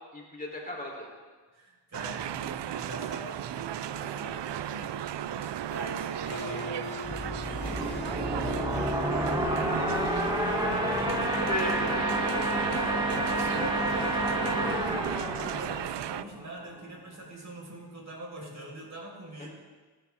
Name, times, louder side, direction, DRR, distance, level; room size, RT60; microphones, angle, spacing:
voice 1, 0.1-1.1 9.7-10.1 11.5-12.9 14.5-14.8, left 1 dB, 20° left, -1 dB, 3.7 m, -37 dB
voice 2, 1.5-9.0 10.4-11.7 13.4-19.5, right 1 dB, 40° right, -2 dB, 5.4 m, -43 dB
sound 1, 1.9-16.2, right 11 dB, 65° right, 0.6 m, -35 dB
Harp, 5.7-13.2, left 2 dB, 85° left, 4.5 m, -44 dB
sound 2, 7.0-16.6, right 1 dB, 10° right, 3.4 m, -29 dB
27.5 x 12.0 x 3.7 m, 1.3 s
cardioid pair, 70°, 45 cm